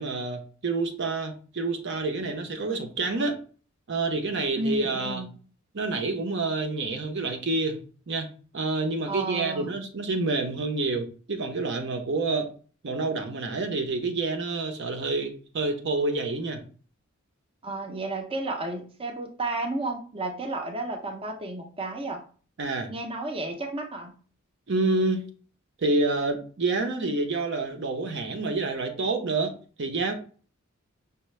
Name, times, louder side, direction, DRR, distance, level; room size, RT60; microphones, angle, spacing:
voice 1, 0.0-3.4 3.9-5.3 5.7-8.3 8.5-12.5 12.8-16.6 22.6-22.9 24.7-25.2 25.8-29.5 29.8-30.1, right 3 dB, 60° right, 0.7 m, -28 dB
voice 2, 4.6-5.3 9.1-9.7 17.6-22.2 22.9-24.1, right 2 dB, 25° right, 0.5 m, -32 dB
5.6 x 2.1 x 3.1 m
head